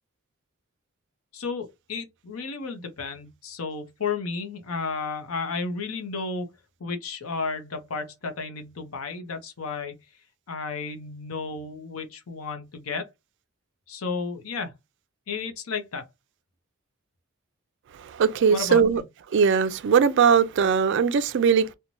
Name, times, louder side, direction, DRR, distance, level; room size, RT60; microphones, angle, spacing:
voice 1, 1.3-6.5 6.8-10.0 10.5-13.0 13.9-14.7 15.3-16.1 18.5-18.8, left 4 dB, 75° left, 0.7 m, -32 dB
voice 2, 17.9-19.0 19.3-21.7, right 6 dB, 55° right, 0.3 m, -20 dB
3.0 x 2.1 x 2.5 m
head